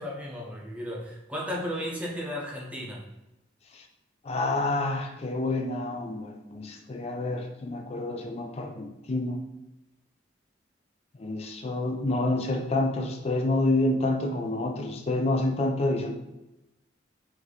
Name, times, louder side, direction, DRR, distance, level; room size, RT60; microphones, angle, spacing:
voice 1, 0.0-3.0, equal, 10° right, -3 dB, 0.7 m, -34 dB
voice 2, 4.2-9.4 11.1-16.1, left 2 dB, 35° left, 4 dB, 0.4 m, -28 dB
3.1 x 2.7 x 4.0 m, 0.97 s
head